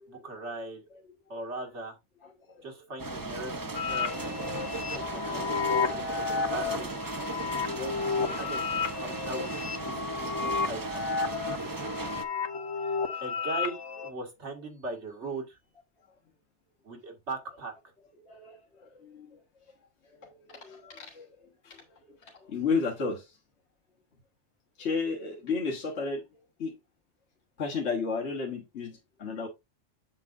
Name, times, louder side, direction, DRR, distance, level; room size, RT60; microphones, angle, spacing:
voice 1, 0.1-0.8 1.3-2.0 2.6-4.2 4.7-6.9 7.7-11.0 13.2-15.6 16.8-17.7, right 2 dB, 80° right, 2.1 m, -39 dB
sound 1, 3.0-12.2, right 2 dB, 25° right, 0.5 m, -36 dB
sound 2, 3.7-14.1, left 5 dB, 90° left, 1.3 m, -32 dB
voice 2, 18.3-19.4 20.2-21.3 21.6-23.4 24.8-26.2 26.6-26.7 27.6-29.5, left 4 dB, 75° left, 1.8 m, -33 dB
7.5 x 7.4 x 2.5 m
omnidirectional pair, 1.2 m